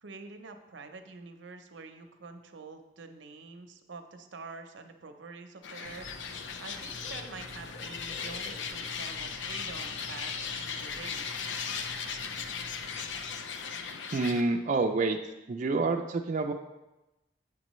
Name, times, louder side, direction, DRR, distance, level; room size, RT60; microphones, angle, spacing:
voice 1, 0.0-11.4, right 4 dB, 90° right, 7 dB, 0.7 m, -47 dB
sound 1, 5.6-14.4, left 6 dB, 80° left, 0.5 m, -37 dB
Bird / Rain, 5.8-14.0, left 1 dB, 60° left, 1.3 m, -49 dB
voice 2, 14.1-15.2 15.5-16.5, right 3 dB, 40° right, 3 dB, 0.4 m, -28 dB
8.7 x 5.9 x 3.1 m, 1.0 s
head